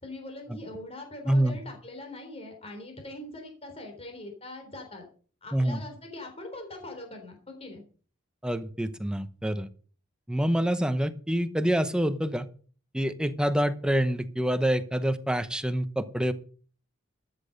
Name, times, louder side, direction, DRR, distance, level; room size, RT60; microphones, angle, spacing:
voice 1, 0.0-5.0 5.4-7.8, left 1 dB, 30° left, 4 dB, 3.7 m, -42 dB
voice 2, 1.3-1.6 5.5-5.8 8.4-9.7 10.3-12.5 12.9-16.3, right 1 dB, 5° right, 11 dB, 0.8 m, -26 dB
13.0 x 8.8 x 5.3 m, 0.41 s
head